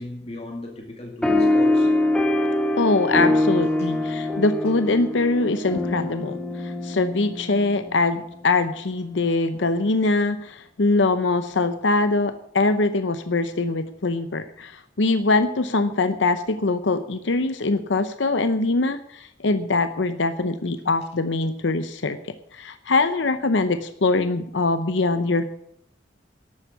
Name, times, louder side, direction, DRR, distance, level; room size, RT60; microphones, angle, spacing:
voice 1, 0.0-1.9 3.8-3.9 20.8-20.9, left 1 dB, 35° left, 1 dB, 2.1 m, -37 dB
sound 1, 1.2-8.1, left 1 dB, 5° left, 1.0 m, -23 dB
voice 2, 2.8-22.2 22.5-25.4, left 3 dB, 85° left, 10 dB, 0.7 m, -23 dB
12.0 x 8.2 x 8.3 m, 0.73 s
head